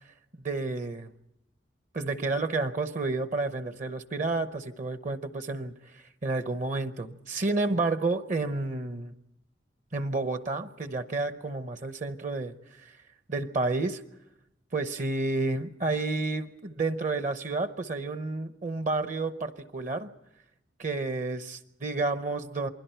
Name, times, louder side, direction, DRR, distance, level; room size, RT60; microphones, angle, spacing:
voice 1, 0.4-1.1 1.9-5.8 6.2-9.1 9.9-12.5 12.8-12.9 13.3-14.0 14.7-20.1 20.8-22.7, right 3 dB, 45° right, 11 dB, 0.8 m, -30 dB
28.0 x 21.5 x 4.5 m, 0.87 s
head